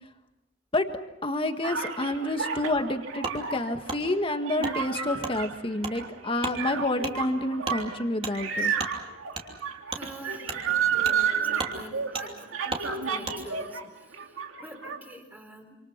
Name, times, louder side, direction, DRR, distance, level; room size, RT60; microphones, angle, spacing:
voice 1, 1.2-8.7, left 1 dB, 25° left, 7 dB, 1.8 m, -29 dB
sound 1, 1.6-13.8 14.1-15.0, right 7 dB, 85° right, 2.6 m, -31 dB
Wood, 3.2-3.4 3.9-4.0 4.6-4.8 5.2-5.4 5.8-6.0 6.4-6.6 7.0-7.2 7.6-7.8 8.2-8.3 8.8-8.9 9.3-9.5 9.9-10.0 10.4-10.6 11.0-11.2 11.5-11.7 12.1-12.3 12.7-12.9 13.2-13.4, right 3 dB, 30° right, 3.2 m, -34 dB
voice 2, 9.9-15.8, equal, 10° right, 4 dB, 4.1 m, -46 dB
27.5 x 27.5 x 5.9 m, 0.95 s
head